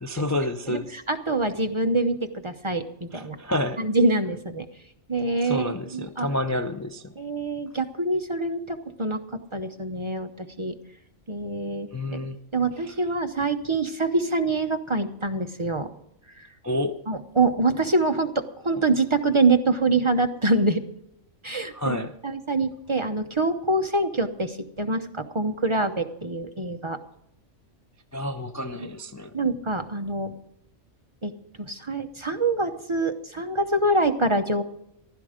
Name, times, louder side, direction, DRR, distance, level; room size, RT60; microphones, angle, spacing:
voice 1, 0.0-1.0 3.1-3.8 5.4-7.1 11.9-12.4 12.9-13.0 16.6-17.0 21.7-22.1 28.1-29.3, left 1 dB, 25° left, 5 dB, 0.3 m, -29 dB
voice 2, 0.7-3.4 3.8-4.7 5.1-6.3 7.2-10.7 11.3-12.2 12.5-15.9 16.4-16.5 17.1-20.8 21.4-27.0 28.8-28.9 29.3-30.3 31.2-31.3 31.6-34.6, right 2 dB, 30° right, 6 dB, 0.7 m, -25 dB
15.0 x 12.5 x 5.0 m, 0.77 s
omnidirectional pair, 1.4 m